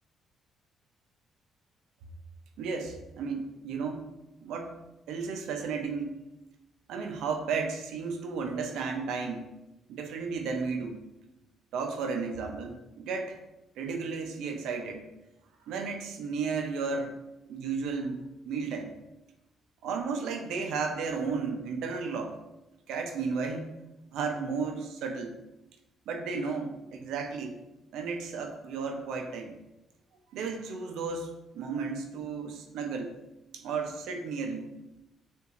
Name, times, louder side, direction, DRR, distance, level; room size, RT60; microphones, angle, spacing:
voice 1, 2.6-4.1 4.4-4.7 5.1-6.2 6.9-9.5 9.9-11.0 11.7-13.4 13.8-15.0 15.7-17.2 17.5-18.9 19.8-22.4 22.9-23.7 24.1-25.3 26.1-27.6 27.9-29.5 30.3-33.1 33.5-34.7, right 5 dB, 85° right, 4 dB, 0.6 m, -33 dB
6.8 x 2.6 x 2.5 m, 0.94 s
cardioid pair, 90°, 0 cm